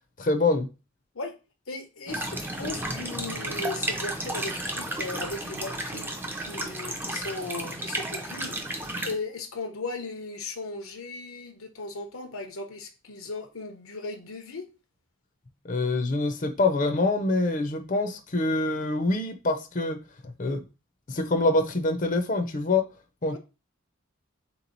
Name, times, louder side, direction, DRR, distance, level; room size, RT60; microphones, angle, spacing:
voice 1, 0.2-0.7 15.6-20.0 20.2-20.6 21.1-22.8 23.2-23.4, left 2 dB, 40° left, 0.6 m, -25 dB
voice 2, 1.7-14.7 23.3-23.4, left 3 dB, 85° left, 0.9 m, -37 dB
sound 1, 2.1-9.1, right 1 dB, 10° right, 0.5 m, -33 dB
3.6 x 3.0 x 3.9 m
head